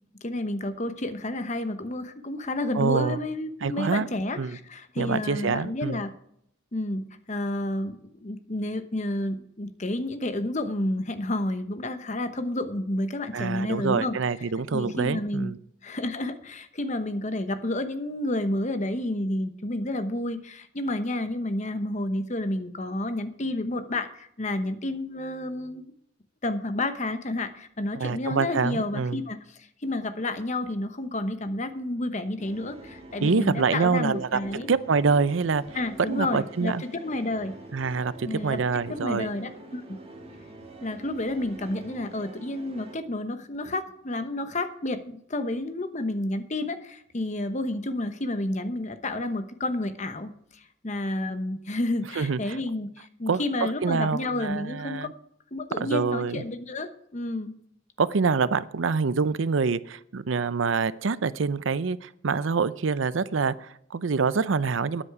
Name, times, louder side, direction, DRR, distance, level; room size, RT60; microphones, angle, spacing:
voice 1, 0.2-6.1 6.7-14.2 14.7-15.5 15.8-25.8 26.4-34.7 35.7-37.5 38.2-38.6 38.9-40.0 40.8-55.1 55.5-57.5, left 1 dB, 35° left, 1.0 m, -30 dB
voice 2, 2.7-3.2 3.6-4.1 4.4-4.6 5.0-6.0 13.3-15.6 28.0-29.2 33.2-34.4 34.7-35.6 36.1-36.8 37.7-39.3 52.2-52.4 53.3-53.4 53.8-55.1 55.8-56.4 58.0-65.0, right 5 dB, 75° right, 0.6 m, -26 dB
sound 1, 32.4-43.0, right 1 dB, 30° right, 2.0 m, -45 dB
13.0 x 9.8 x 4.8 m
head